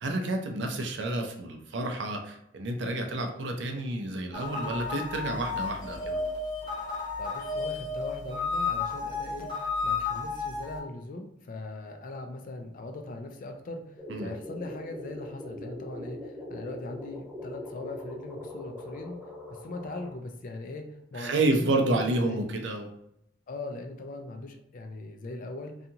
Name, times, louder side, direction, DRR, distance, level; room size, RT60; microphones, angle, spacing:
voice 1, 0.0-6.2 14.1-14.3 21.2-22.9, right 2 dB, 70° right, 3 dB, 0.5 m, -29 dB
sound 1, 4.3-10.8, left 4 dB, 25° left, 0.9 m, -32 dB
voice 2, 7.2-9.5 9.8-19.2 19.5-21.8 22.0-22.6 23.5-25.9, left 2 dB, 50° left, 5 dB, 0.4 m, -40 dB
sound 2, 14.0-20.1, left 1 dB, 5° right, 0.5 m, -41 dB
2.7 x 2.4 x 2.7 m, 0.75 s
head